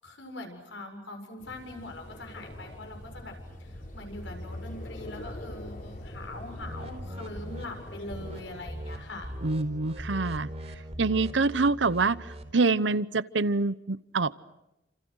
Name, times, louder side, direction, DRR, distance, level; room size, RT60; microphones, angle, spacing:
voice 1, 0.0-9.3, left 2 dB, 75° left, 4 dB, 7.1 m, -42 dB
sound 1, 1.4-9.6, left 1 dB, 45° left, 4.4 m, -43 dB
sound 2, 6.6-7.7 8.1-8.4 8.7-9.0 9.2-12.5, equal, 35° right, 4.0 m, -39 dB
voice 2, 9.4-10.5 11.0-12.2 12.5-14.3, right 3 dB, 75° right, 17 dB, 0.9 m, -25 dB
30.0 x 27.5 x 6.5 m, 0.92 s
head